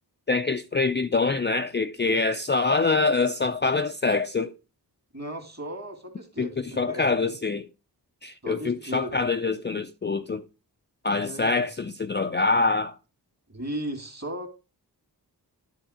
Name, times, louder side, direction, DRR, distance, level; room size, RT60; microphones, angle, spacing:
voice 1, 0.3-4.5 6.4-6.5 6.8-7.7 8.2-10.4 11.0-13.0, left 3 dB, 30° left, 0.4 m, -25 dB
voice 2, 5.1-7.4 8.4-9.1 11.2-11.7 13.5-14.5, equal, 40° right, 2.1 m, -36 dB
9.9 x 3.6 x 4.9 m
wide cardioid pair, 50°, 40 cm